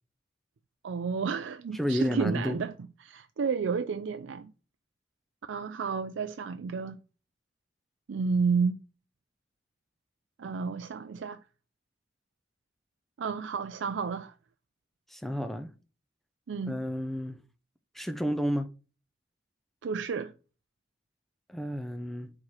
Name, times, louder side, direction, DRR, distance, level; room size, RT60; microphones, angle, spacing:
voice 1, 0.8-2.7 3.0-4.5 5.5-7.0 8.1-8.8 10.4-11.4 13.2-14.3 16.5-16.8 19.8-20.3, right 5 dB, 80° right, 0.4 m, -31 dB
voice 2, 1.7-2.6 15.1-15.7 16.6-17.4 17.9-18.7 21.5-22.3, equal, ahead, 0.5 m, -31 dB
4.8 x 4.2 x 5.9 m
head